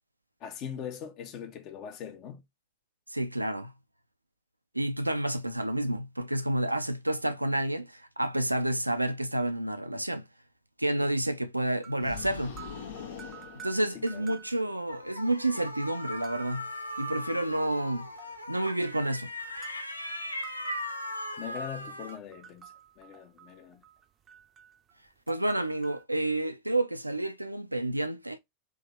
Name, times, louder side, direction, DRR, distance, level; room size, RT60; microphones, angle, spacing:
voice 1, 0.4-2.4 13.9-14.2 21.4-23.8, left 8 dB, 40° left, 1.0 m, -41 dB
voice 2, 3.1-3.7 4.7-10.3 10.8-12.6 13.6-16.7 17.0-18.1 18.5-19.3 25.3-28.4, right 1 dB, 85° right, 0.4 m, -29 dB
sound 1, 11.7-15.1 15.4-15.5 16.2-16.7 17.7-19.1 19.6-19.9 20.4-26.0, right 8 dB, 25° right, 0.6 m, -51 dB
sound 2, 12.0-14.5, left 6 dB, 65° left, 1.1 m, -43 dB
sound 3, 14.9-22.2, left 1 dB, 85° left, 0.6 m, -38 dB
3.7 x 2.9 x 3.6 m
figure-of-eight pair, 90°, 0 cm